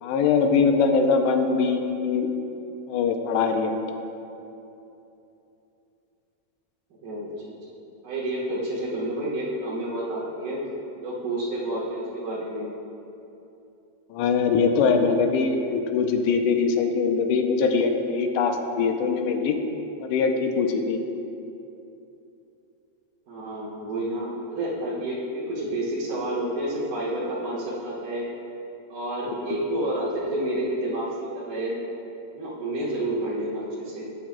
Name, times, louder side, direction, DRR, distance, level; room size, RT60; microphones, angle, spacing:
voice 1, 0.0-2.3 2.9-3.7 14.1-19.6 20.0-21.0 29.3-29.4, left 5 dB, 90° left, 4 dB, 2.8 m, -22 dB
voice 2, 7.0-7.5 8.0-10.6 11.0-12.7 23.3-28.3 28.9-31.8 32.3-34.0, right 1 dB, 60° right, -10 dB, 4.5 m, -29 dB
18.5 x 9.5 x 2.3 m, 2.8 s
omnidirectional pair, 5.0 m